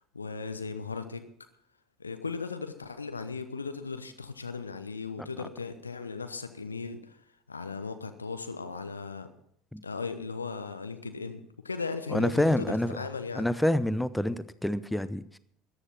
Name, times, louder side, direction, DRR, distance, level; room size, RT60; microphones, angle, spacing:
voice 1, 0.1-1.2 2.0-7.2 7.5-9.3 9.8-13.5, left 4 dB, 80° left, 9 dB, 1.0 m, -37 dB
voice 2, 12.1-13.0 13.4-15.4, left 1 dB, 5° left, 15 dB, 0.7 m, -28 dB
14.0 x 9.9 x 6.0 m, 0.71 s
figure-of-eight pair, 65°, 0 cm